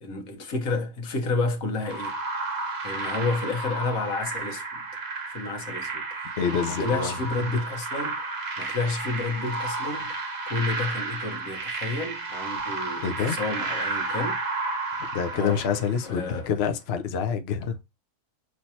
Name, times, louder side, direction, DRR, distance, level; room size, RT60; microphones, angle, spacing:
voice 1, 0.0-2.1 2.8-4.8 5.3-8.2 8.6-14.4 15.3-15.6 16.0-16.5, left 3 dB, 85° left, 1.5 m, -30 dB
sound 1, 1.8-16.2, right 3 dB, 50° right, 1.6 m, -32 dB
voice 2, 6.4-7.5 13.0-13.4 15.1-17.8, left 7 dB, 55° left, 0.9 m, -27 dB
5.9 x 3.2 x 2.7 m
omnidirectional pair, 1.4 m